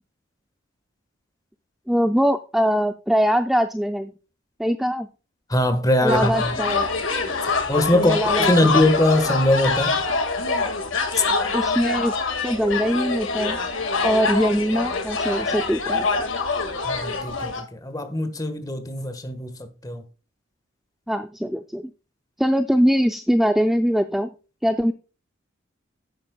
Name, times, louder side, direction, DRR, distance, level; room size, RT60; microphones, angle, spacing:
voice 1, 1.9-4.1 4.6-5.1 6.0-6.9 7.9-8.5 11.5-12.1 12.4-13.6 14.0-16.1 21.1-21.9 22.4-24.3 24.6-24.9, equal, ahead, 0.4 m, -22 dB
voice 2, 5.5-6.3 7.7-10.0 16.8-19.5 19.8-20.0, left 1 dB, 20° left, 1.4 m, -21 dB
sound 1, 6.1-17.6, left 4 dB, 65° left, 1.9 m, -25 dB
10.5 x 8.7 x 2.3 m
head